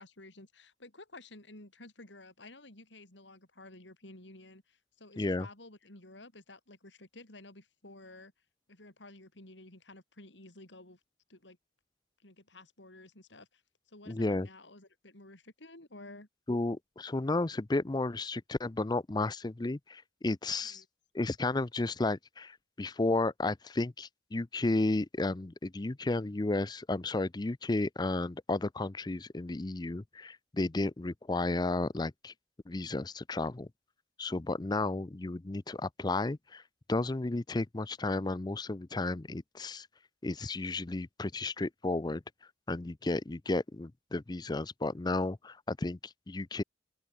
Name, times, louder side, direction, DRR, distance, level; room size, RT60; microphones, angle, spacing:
voice 1, 0.0-8.3 8.7-11.0 11.3-11.6 12.2-16.3 20.6-20.9, left 2 dB, 75° left, 4.8 m, -52 dB
voice 2, 5.2-5.5 14.1-14.5 16.5-20.8 21.1-32.3 32.7-33.7 34.2-36.6 36.9-39.9 40.2-42.2 42.7-46.6, left 2 dB, 20° left, 0.5 m, -33 dB
open air
head